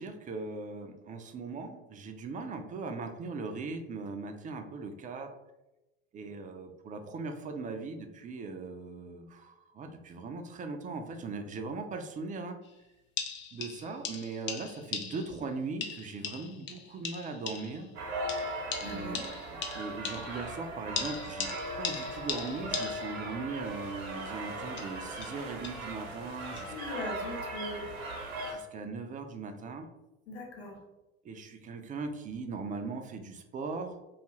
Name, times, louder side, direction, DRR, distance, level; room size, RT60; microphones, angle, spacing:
voice 1, 0.0-5.3 6.1-12.6 13.5-17.9 18.8-21.5 21.8-26.7 28.5-29.9 31.2-34.0, right 4 dB, 25° right, 6 dB, 0.4 m, -39 dB
sound 1, 12.6-12.7 13.2-15.4 15.8-17.9 18.3-20.5 21.0-23.3 24.6-25.9 26.6-26.7, left 6 dB, 35° left, 0.5 m, -39 dB
sound 2, 17.9-28.5, right 1 dB, 70° right, 0.9 m, -38 dB
voice 2, 18.8-19.2 26.7-27.9 30.3-30.8, left 2 dB, 75° left, 0 dB, 0.8 m, -40 dB
2.5 x 2.4 x 3.0 m, 0.99 s
hypercardioid pair, 65°, 32 cm